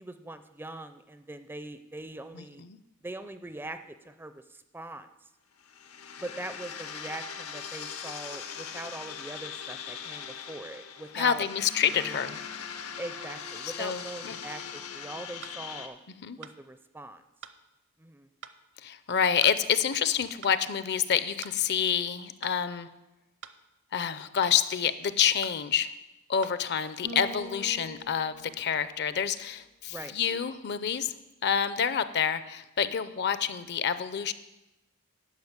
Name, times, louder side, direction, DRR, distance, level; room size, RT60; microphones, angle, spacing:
voice 1, 0.0-2.6 3.0-5.3 6.2-11.5 11.9-12.3 13.0-16.0 16.4-17.2 18.0-18.3 29.9-30.1, right 2 dB, 10° right, 11 dB, 0.4 m, -42 dB
voice 2, 2.3-2.8 11.1-12.4 13.8-14.4 16.2-16.4 18.8-22.9 23.9-25.9 26.3-31.1 31.4-34.3, left 8 dB, 50° left, 14 dB, 0.5 m, -28 dB
sound 1, 5.6-15.9, left 7 dB, 85° left, 1.0 m, -41 dB
sound 2, 14.4-14.6 15.4-15.6 16.4-16.6 17.4-17.6 18.4-18.6 19.4-19.6 20.4-20.6 21.4-21.6 22.4-22.6 23.4-23.6 24.4-24.6 25.4-25.6 26.4-26.6, right 8 dB, 60° right, 0.6 m, -46 dB
Bass guitar, 27.0-29.4, left 1 dB, 90° right, 2.1 m, -44 dB
11.5 x 5.6 x 8.1 m, 0.98 s
head